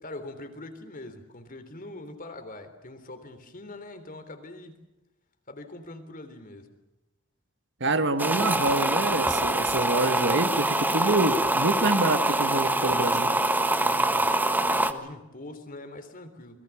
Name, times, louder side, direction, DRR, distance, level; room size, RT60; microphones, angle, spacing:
voice 1, 0.0-4.7 5.5-6.8 13.7-14.4 14.7-16.6, left 2 dB, 45° left, 9 dB, 3.4 m, -43 dB
voice 2, 7.8-13.3, right 2 dB, 60° right, 10 dB, 1.7 m, -26 dB
sound 1, 8.2-14.9, right 2 dB, 10° right, 1.3 m, -25 dB
28.5 x 22.0 x 7.2 m, 0.99 s
head